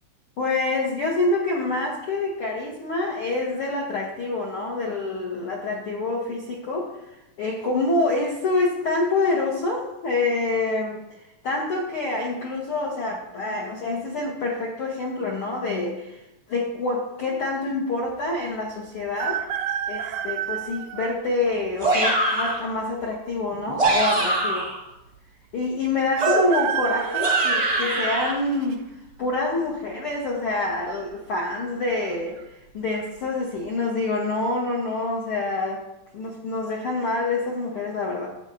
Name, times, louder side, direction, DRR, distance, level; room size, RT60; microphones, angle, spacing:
voice 1, 0.4-6.9 7.4-11.0 11.4-16.2 16.5-19.4 19.9-24.7 25.5-28.8 29.2-35.8 36.1-38.3, left 2 dB, 75° left, -3 dB, 1.2 m, -26 dB
sound 1, 19.1-21.2 21.8-21.9 23.0-23.6 23.9-24.0 24.2-24.3 26.1-28.8 29.3-29.7 30.8-31.2 31.4-31.5 32.1-32.4 32.9-33.1, right 10 dB, 80° right, 1.8 m, -29 dB
sound 2, 21.8-22.6 23.6-24.8 26.2-28.3, right 1 dB, 50° right, 0.3 m, -23 dB
12.0 x 8.8 x 2.7 m, 0.91 s
omnidirectional pair, 4.2 m